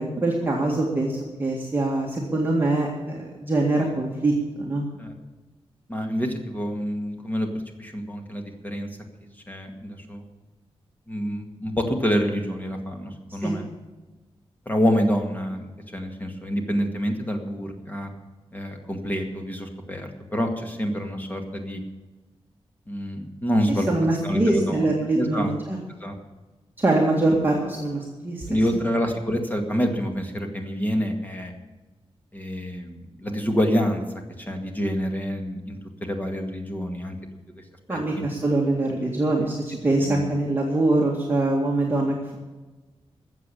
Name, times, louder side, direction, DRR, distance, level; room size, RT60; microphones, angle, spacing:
voice 1, 0.0-4.9 13.4-13.6 23.7-25.8 26.8-28.8 37.9-42.4, right 2 dB, 20° right, -2 dB, 2.0 m, -24 dB
voice 2, 5.9-7.5 7.8-8.9 9.5-10.2 11.1-13.7 14.7-18.1 18.5-21.8 22.9-23.9 24.2-24.9 25.1-25.5 26.0-26.1 28.5-31.5 32.3-34.0 34.5-37.2 37.9-38.0 40.0-40.2, equal, 15° left, 4 dB, 2.0 m, -27 dB
14.5 x 7.6 x 8.5 m, 1.2 s
wide cardioid pair, 150°, 10 cm